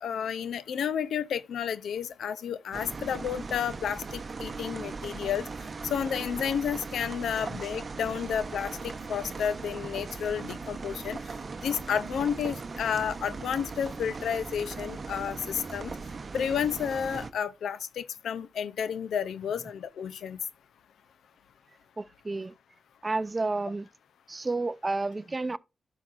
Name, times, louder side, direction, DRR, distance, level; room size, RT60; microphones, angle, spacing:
voice 1, 0.0-5.5 5.8-11.2 11.6-16.0 16.3-20.4, left 8 dB, 90° left, 0.5 m, -31 dB
sound 1, 2.7-17.3, right 4 dB, 45° right, 0.8 m, -39 dB
voice 2, 22.0-22.5 23.0-23.9 24.3-25.6, right 3 dB, 30° right, 0.4 m, -31 dB
12.0 x 5.8 x 2.5 m
cardioid pair, 70°, 0 cm